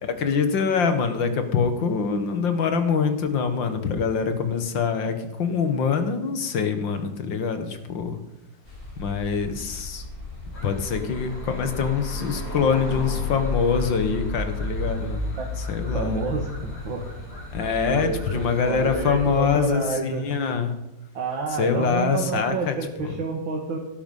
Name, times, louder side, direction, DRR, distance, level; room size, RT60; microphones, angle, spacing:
voice 1, 0.0-8.2 9.0-10.1 10.6-16.2 17.5-20.7 21.5-22.7 23.0-23.1, left 6 dB, 75° left, 8 dB, 2.2 m, -24 dB
sound 1, 8.6-19.5, left 2 dB, 30° left, 4.6 m, -33 dB
sound 2, 10.5-19.1, left 1 dB, 55° left, 7.0 m, -42 dB
voice 2, 15.9-17.1 17.9-20.3 21.1-23.8, right 4 dB, 90° right, 1 dB, 2.4 m, -29 dB
17.5 x 11.0 x 5.5 m, 0.96 s
omnidirectional pair, 2.1 m